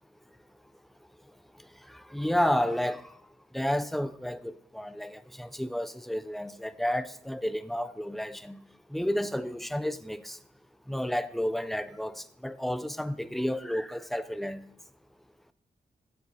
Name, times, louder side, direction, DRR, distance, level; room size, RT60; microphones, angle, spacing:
voice 1, 2.1-3.0 3.5-8.6 8.9-10.4 10.9-14.6, equal, ahead, 0.4 m, -31 dB
15.0 x 6.5 x 2.7 m
wide cardioid pair, 130°, 16 cm